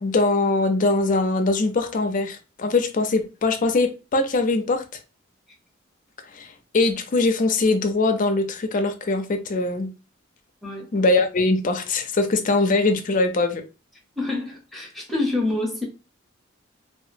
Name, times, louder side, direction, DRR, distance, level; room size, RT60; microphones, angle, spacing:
voice 1, 0.0-5.0 6.3-9.9 10.9-13.6, left 3 dB, 40° left, 0.4 m, -22 dB
voice 2, 10.6-10.9 14.2-15.9, left 2 dB, ahead, 0.7 m, -27 dB
2.8 x 2.3 x 2.5 m
head